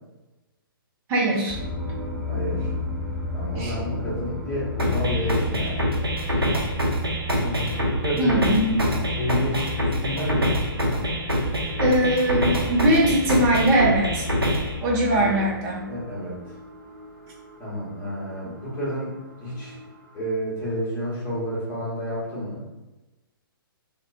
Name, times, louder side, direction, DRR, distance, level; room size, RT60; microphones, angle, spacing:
voice 1, 1.1-1.6 3.6-3.7 8.2-8.8 11.8-14.2 14.8-15.9, right 1 dB, 20° right, -3 dB, 0.6 m, -21 dB
sound 1, 1.5-20.4, left 2 dB, 5° right, 1.2 m, -34 dB
voice 2, 2.3-2.7 3.3-5.8 6.2-6.4 7.3-8.6 9.1-10.5 15.1-16.4 17.6-19.8 20.1-22.6, equal, 20° left, -8 dB, 1.1 m, -30 dB
sound 2, 4.8-14.8, equal, 85° right, 0.5 m, -25 dB
2.4 x 2.1 x 2.5 m, 1.1 s
figure-of-eight pair, 125°, 12 cm